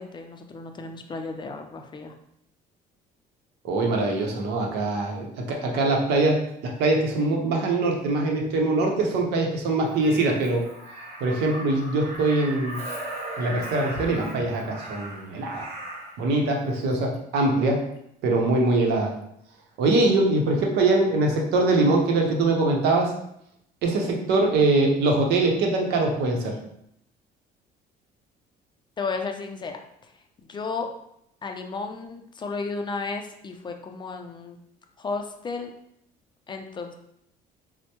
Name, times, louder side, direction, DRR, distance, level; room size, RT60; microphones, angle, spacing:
voice 1, 0.0-2.1 29.0-29.8 30.5-30.9 31.4-34.6 35.0-35.7 36.5-36.9, left 4 dB, 25° left, 4 dB, 0.4 m, -33 dB
voice 2, 3.6-10.6 11.2-12.8 13.4-15.7 16.2-17.8 18.2-19.1 19.8-23.1 23.8-26.6, right 2 dB, 85° right, 1 dB, 0.7 m, -23 dB
Crow, 9.8-16.2 17.6-17.8, right 1 dB, 60° right, 1.0 m, -37 dB
4.3 x 2.1 x 2.9 m, 0.75 s
cardioid pair, 110°, 17 cm